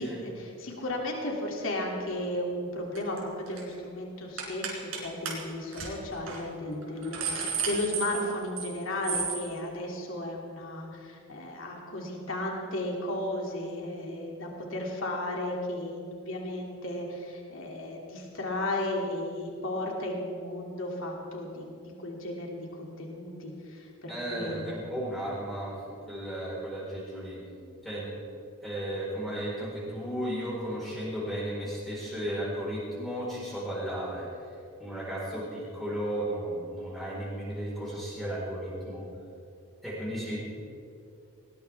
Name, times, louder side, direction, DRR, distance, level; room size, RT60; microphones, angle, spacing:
voice 1, 0.0-21.7 22.0-24.7, left 1 dB, 60° left, -1 dB, 2.7 m, -34 dB
sound 1, 2.9-3.2 3.5-3.7 4.4-5.0 5.3-5.4 5.7-5.9 6.3-6.4 6.8-8.7 9.0-9.4, right 5 dB, 65° right, 3.9 m, -32 dB
voice 2, 24.1-25.8 26.1-27.4 27.8-28.1 28.6-34.3 34.8-39.0 39.8-40.4, right 1 dB, ahead, -8 dB, 4.2 m, -34 dB
19.5 x 19.0 x 3.5 m, 2.5 s
head